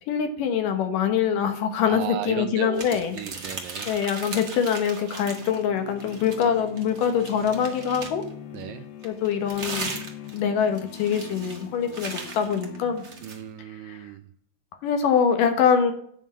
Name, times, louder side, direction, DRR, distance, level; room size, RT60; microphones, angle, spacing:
voice 1, 0.1-3.2 3.9-8.2 9.0-10.0 10.3-13.0 13.6-14.1 14.8-15.9, left 7 dB, 70° left, 7 dB, 2.4 m, -24 dB
voice 2, 1.8-3.9 8.5-8.9 13.2-14.3, right 12 dB, 80° right, 9 dB, 2.1 m, -35 dB
sound 1, 2.7-5.6 6.0-8.3 9.0-13.4, right 3 dB, 60° right, 0.7 m, -38 dB
sound 2, 5.2-13.5, left 7 dB, 90° left, 1.3 m, -43 dB
9.3 x 5.3 x 7.3 m, 0.63 s
omnidirectional pair, 4.3 m